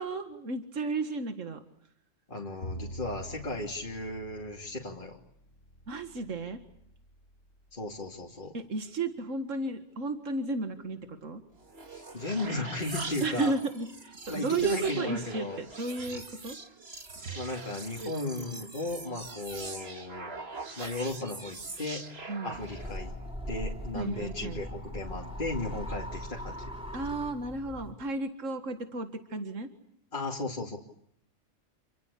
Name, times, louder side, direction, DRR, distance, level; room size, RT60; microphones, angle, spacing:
voice 1, 0.0-1.6 5.9-6.6 8.5-11.4 13.2-16.6 17.2-17.4 18.0-18.1 22.3-22.6 23.9-24.6 26.9-29.7, right 3 dB, 75° right, 8 dB, 2.2 m, -33 dB
voice 2, 2.3-5.2 7.7-8.5 11.9-13.5 14.3-15.6 17.3-20.3 20.8-22.0 22.4-23.1 23.5-26.7 30.1-30.8, left 2 dB, 40° left, -1 dB, 2.9 m, -35 dB
Bowed string instrument, 2.6-8.8, equal, 85° left, 3.6 m, -47 dB
sound 1, 11.6-23.0, right 3 dB, 50° right, 2.5 m, -43 dB
sound 2, 22.5-27.9, equal, 5° right, 4.0 m, -39 dB
29.0 x 24.5 x 8.5 m, 0.72 s
omnidirectional pair, 1.3 m